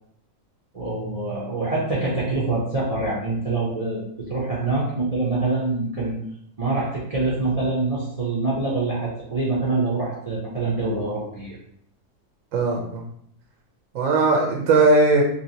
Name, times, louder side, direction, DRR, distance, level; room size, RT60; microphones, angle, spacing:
voice 1, 0.7-6.2 6.6-11.6, right 3 dB, 45° right, -5 dB, 0.4 m, -25 dB
voice 2, 12.5-13.0 13.9-15.2, right 2 dB, 65° right, 0 dB, 0.9 m, -18 dB
3.2 x 2.8 x 2.8 m, 0.70 s
omnidirectional pair, 1.7 m